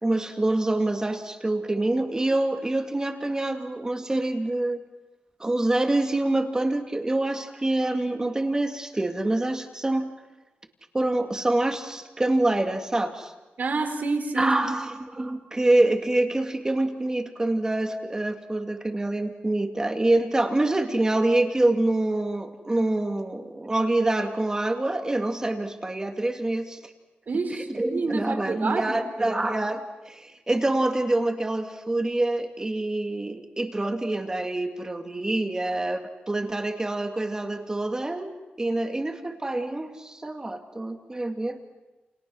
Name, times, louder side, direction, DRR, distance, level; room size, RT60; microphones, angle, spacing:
voice 1, 0.0-4.8 5.4-10.1 10.9-13.3 14.4-26.9 27.7-41.6, right 2 dB, 20° right, 5 dB, 2.3 m, -26 dB
voice 2, 13.6-14.5 27.3-28.9, right 3 dB, 55° right, 5 dB, 4.0 m, -28 dB
30.0 x 29.0 x 6.3 m, 1.1 s
wide cardioid pair, 130°, 4 cm